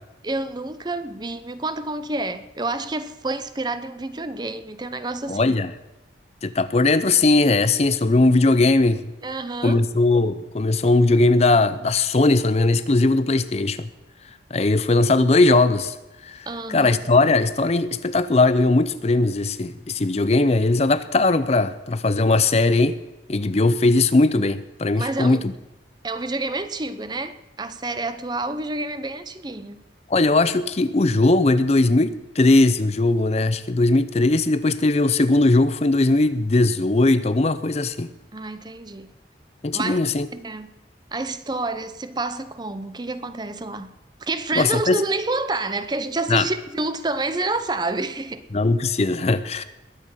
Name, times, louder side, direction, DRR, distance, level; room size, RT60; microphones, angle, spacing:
voice 1, 0.2-5.6 9.2-9.8 16.5-17.0 25.0-25.5 26.0-29.8 38.3-39.1 39.7-40.0 40.3-40.7 41.1-43.9 44.2-48.4, right 2 dB, 25° right, 0.7 m, -28 dB
voice 2, 5.3-5.7 6.4-9.0 9.6-13.9 14.5-15.9 16.2-23.0 23.3-25.5 30.1-38.1 39.6-40.3 44.5-45.0 46.3-46.5 48.5-49.6, left 2 dB, 35° left, 0.6 m, -19 dB
21.0 x 8.5 x 5.6 m
head